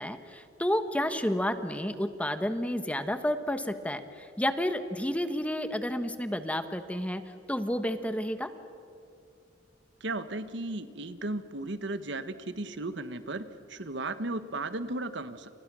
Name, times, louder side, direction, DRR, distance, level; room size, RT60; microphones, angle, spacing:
voice 1, 0.0-7.2 7.5-8.5, left 1 dB, 5° left, 9 dB, 1.2 m, -30 dB
voice 2, 10.0-15.6, right 2 dB, 65° right, 11 dB, 1.4 m, -35 dB
29.5 x 29.0 x 6.2 m, 2.4 s
head